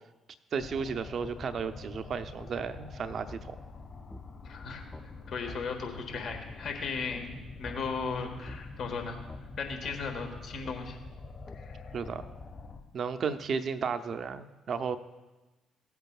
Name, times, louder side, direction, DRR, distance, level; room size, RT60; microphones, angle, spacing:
voice 1, 0.5-3.6 11.9-12.2 12.9-15.0, right 6 dB, 55° right, 10 dB, 0.7 m, -33 dB
sound 1, 0.6-12.8, left 3 dB, 40° left, 1.8 m, -46 dB
sound 2, 3.3-3.4 4.1-4.2 4.9-5.1 5.5-5.6 6.3-6.4 7.1-7.2 7.6-7.8 8.5-8.6 9.3-9.4 9.8-10.0 10.6-10.8 11.5-11.6, left 1 dB, 20° left, 0.8 m, -45 dB
voice 2, 4.4-4.8 5.3-9.2 9.6-11.0 11.5-11.8, left 5 dB, 60° left, 4 dB, 1.6 m, -36 dB
16.5 x 8.1 x 2.4 m, 1.1 s
hypercardioid pair, 45°, 0 cm